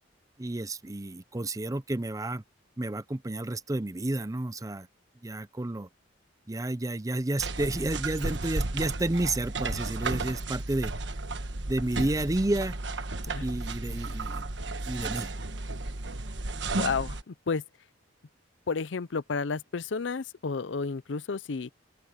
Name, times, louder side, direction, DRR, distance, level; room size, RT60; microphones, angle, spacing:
voice 1, 0.4-2.4 2.8-4.9 5.2-5.9 6.5-10.9 11.7-12.8 13.4-14.4 14.9-15.3, right 2 dB, 20° right, 0.6 m, -31 dB
sound 1, 7.4-17.2, right 2 dB, 65° right, 1.4 m, -33 dB
voice 2, 16.7-17.6 18.7-21.7, left 4 dB, 70° left, 0.6 m, -31 dB
open air
head